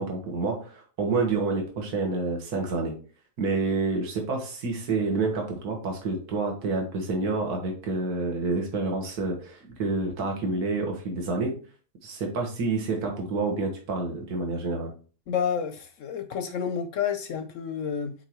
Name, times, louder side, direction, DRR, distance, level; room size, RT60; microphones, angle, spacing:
voice 1, 0.0-2.9 3.4-11.6 12.0-14.9, right 3 dB, 65° right, 2.0 m, -28 dB
voice 2, 15.3-18.1, left 7 dB, 60° left, 0.9 m, -29 dB
8.0 x 4.1 x 3.0 m
omnidirectional pair, 1.8 m